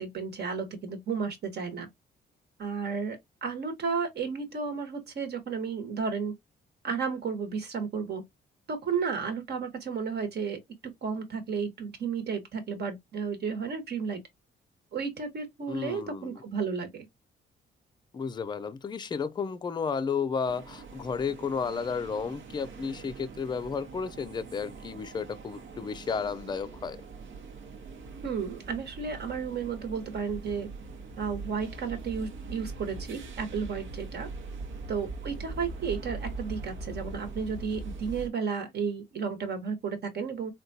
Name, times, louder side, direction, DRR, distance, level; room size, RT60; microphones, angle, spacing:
voice 1, 0.0-1.9 2.6-6.3 6.8-8.2 8.7-10.6 11.0-14.2 14.9-17.1 28.2-30.7 31.2-34.3 34.9-40.5, right 5 dB, 55° right, 1.1 m, -33 dB
voice 2, 15.7-16.3 18.1-27.0, left 5 dB, 20° left, 0.4 m, -32 dB
sound 1, 20.4-38.3, right 3 dB, 75° right, 0.9 m, -42 dB
3.7 x 2.3 x 2.6 m
cardioid pair, 90°, 20 cm